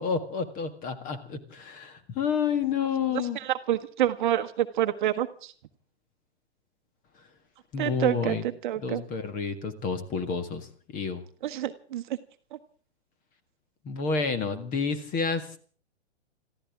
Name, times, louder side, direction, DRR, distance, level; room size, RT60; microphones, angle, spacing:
voice 1, 0.0-3.4 7.7-8.4 8.8-11.2 13.8-15.6, left 5 dB, 25° left, 10 dB, 1.8 m, -30 dB
voice 2, 3.3-5.5 7.8-9.0 11.4-12.0, right 11 dB, 45° right, 10 dB, 1.1 m, -27 dB
26.5 x 14.5 x 3.6 m, 0.43 s
figure-of-eight pair, 120°, 34 cm